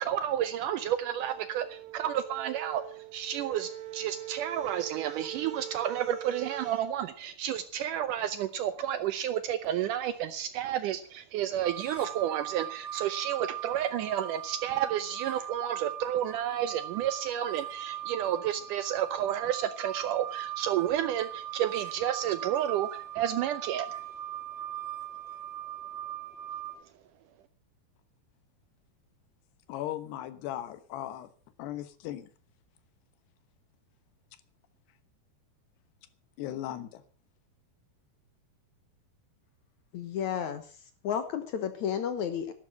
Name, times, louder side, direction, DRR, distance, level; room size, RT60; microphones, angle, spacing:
voice 1, 0.0-23.9, right 10 dB, 85° right, 12 dB, 1.8 m, -31 dB
sound 1, 0.8-6.9, right 13 dB, 65° right, 3.4 m, -43 dB
sound 2, 11.6-26.7, right 12 dB, 30° right, 0.7 m, -39 dB
voice 2, 29.7-31.3 31.6-32.3 36.4-37.0, left 12 dB, 85° left, 13 dB, 3.3 m, -37 dB
voice 3, 39.9-40.7 41.0-42.5, left 8 dB, 70° left, 10 dB, 1.9 m, -32 dB
12.0 x 12.0 x 6.4 m, 0.42 s
omnidirectional pair, 4.7 m